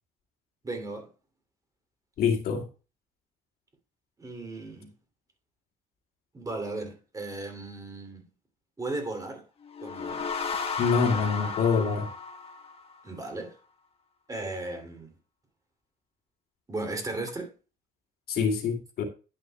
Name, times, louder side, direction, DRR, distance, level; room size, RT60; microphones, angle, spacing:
voice 1, 0.6-1.1 4.2-4.9 6.3-8.3 8.8-9.4 9.8-10.3 13.0-13.6 14.3-15.1 16.7-17.5, right 2 dB, 20° right, 2.7 m, -36 dB
voice 2, 2.2-2.6 10.8-12.1 18.3-19.0, left 5 dB, 65° left, 2.5 m, -25 dB
sound 1, 9.6-13.2, left 5 dB, 35° left, 1.5 m, -34 dB
10.5 x 9.2 x 2.3 m
cardioid pair, 110°, 17 cm